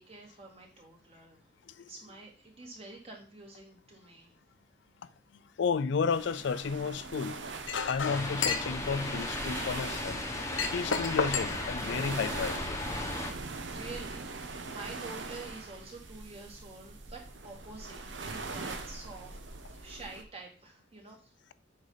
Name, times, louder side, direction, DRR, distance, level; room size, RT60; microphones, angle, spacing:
voice 1, 0.0-1.5 1.9-4.3 13.3-19.4 19.7-21.3, right 3 dB, 30° right, 2.4 m, -48 dB
voice 2, 5.0-7.5 7.9-10.2 10.7-12.8, left 5 dB, 65° left, 0.4 m, -33 dB
sound 1, 6.1-20.2, right 3 dB, 65° right, 1.0 m, -42 dB
Chink clink, 7.6-12.6, left 5 dB, 80° left, 0.9 m, -35 dB
sound 2, 8.0-13.3, left 2 dB, 15° left, 1.1 m, -36 dB
7.9 x 5.4 x 4.0 m
head